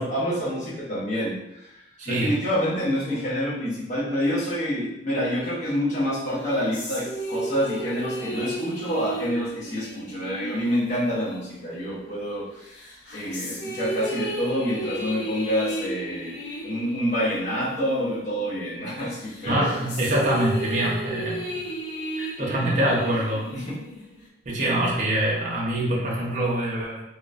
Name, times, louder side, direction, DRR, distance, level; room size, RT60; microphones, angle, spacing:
voice 1, 0.0-12.8 13.1-19.8 23.5-23.8, equal, 45° left, -7 dB, 0.8 m, -27 dB
voice 2, 2.0-2.4 19.5-21.6 22.2-23.5 24.5-27.0, right 1 dB, 45° right, -4 dB, 0.6 m, -25 dB
sound 1, 6.3-12.2 12.7-18.8 19.2-24.3, right 1 dB, 80° left, 0.7 m, -34 dB
3.0 x 2.0 x 2.4 m, 0.87 s
head